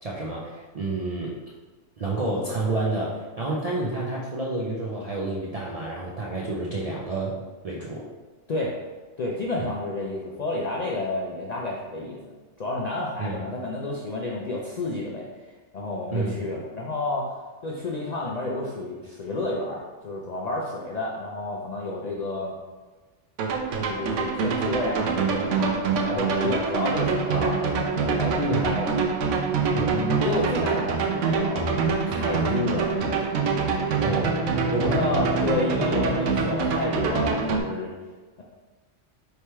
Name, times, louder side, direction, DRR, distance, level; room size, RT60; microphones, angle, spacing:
voice 1, 0.0-1.4 2.0-7.4 7.6-8.1 9.6-9.7 13.2-13.4 16.1-16.5 28.4-28.7 29.7-30.1 34.0-34.4 34.7-35.2, right 2 dB, 55° right, -4 dB, 0.4 m, -29 dB
voice 2, 9.2-12.2 12.6-15.3 15.7-17.3 17.6-22.5 23.9-28.9 29.8-33.0 34.7-37.9, left 2 dB, 60° left, -3 dB, 0.4 m, -30 dB
sound 1, 23.4-37.6, right 5 dB, 85° right, 0.9 m, -25 dB
3.4 x 2.9 x 4.4 m, 1.3 s
omnidirectional pair, 1.2 m